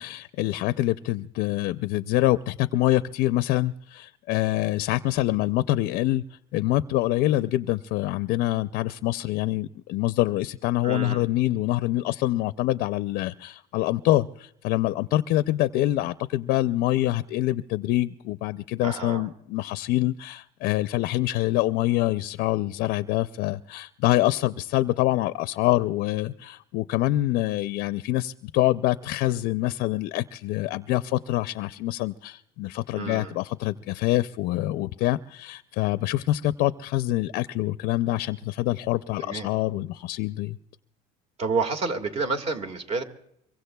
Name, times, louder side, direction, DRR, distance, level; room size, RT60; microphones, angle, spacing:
voice 1, 0.0-6.2 6.5-40.6, left 16 dB, 65° left, 13 dB, 0.5 m, -25 dB
voice 2, 10.8-11.2 18.8-19.3 32.9-33.3 39.2-39.5 41.4-43.0, right 4 dB, 40° right, 8 dB, 1.8 m, -29 dB
25.0 x 23.0 x 2.3 m, 0.75 s
cardioid pair, 140°, 16 cm